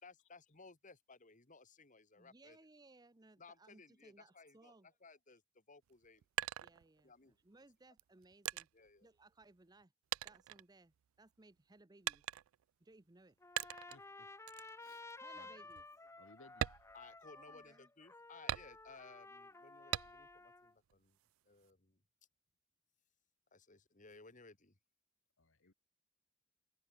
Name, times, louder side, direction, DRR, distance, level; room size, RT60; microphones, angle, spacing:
voice 1, 0.0-2.6 3.4-6.2 7.0-7.4 8.7-9.1 16.9-21.2 21.5-22.0 23.5-24.8, left 4 dB, 40° left, 1.9 m, -60 dB
voice 2, 2.2-4.9 6.6-8.7 9.0-9.9 10.2-12.2 12.8-13.4 15.2-15.8 17.3-17.9, right 2 dB, 20° right, 0.7 m, -63 dB
sound 1, 5.8-7.3 8.0-9.8 10.1-11.3 12.0-12.7 13.6-14.0 14.5-14.7 15.2-15.3 15.7-15.9 16.5-17.7 18.5-19.1 19.9-20.5 20.9-21.7, right 13 dB, 85° right, 0.3 m, -42 dB
Trumpet, 13.4-20.7, left 2 dB, 15° left, 1.1 m, -54 dB
voice 3, 13.9-14.3 14.8-15.1 15.3-15.7 16.1-16.7 25.4-25.7, left 3 dB, 70° left, 1.8 m, -63 dB
head